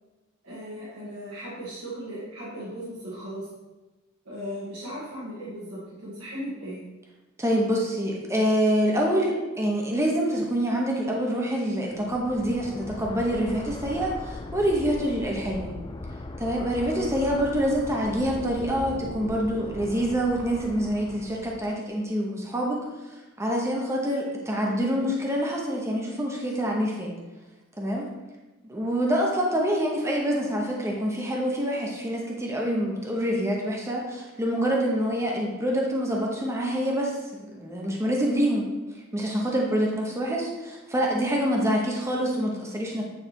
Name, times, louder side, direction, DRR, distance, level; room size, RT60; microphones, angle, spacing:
voice 1, 0.4-3.5 4.3-6.8 24.6-25.1, equal, 90° right, -9 dB, 2.0 m, -37 dB
voice 2, 7.4-15.7 16.4-22.9 23.4-27.1 27.8-28.1 28.7-38.7 39.1-43.0, equal, 15° right, -1 dB, 0.9 m, -26 dB
sound 1, 11.9-21.8, left 2 dB, 20° left, 0.3 m, -39 dB
9.2 x 3.4 x 4.4 m, 1.1 s
head